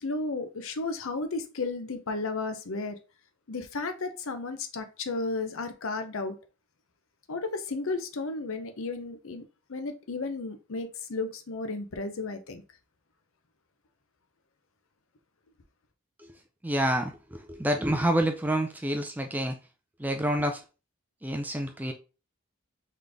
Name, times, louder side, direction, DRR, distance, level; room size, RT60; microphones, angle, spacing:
voice 1, 0.0-3.0 3.5-6.4 7.3-9.4 9.7-12.6, left 3 dB, 65° left, 0.7 m, -33 dB
voice 2, 16.6-19.6 20.0-20.6 21.2-21.9, right 1 dB, 10° right, 0.4 m, -28 dB
4.0 x 3.3 x 3.4 m
head